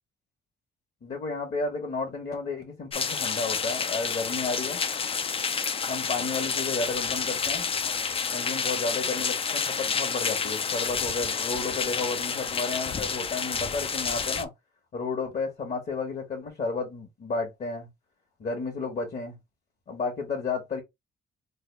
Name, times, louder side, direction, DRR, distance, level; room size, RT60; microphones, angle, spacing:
voice 1, 1.0-4.8 5.9-7.7 8.3-14.5 14.9-17.9 18.4-19.4 19.9-20.8, left 4 dB, 45° left, 1.4 m, -32 dB
sound 1, 2.9-14.4, left 6 dB, 30° left, 0.4 m, -29 dB
3.4 x 2.2 x 3.3 m
cardioid pair, 90°, 20 cm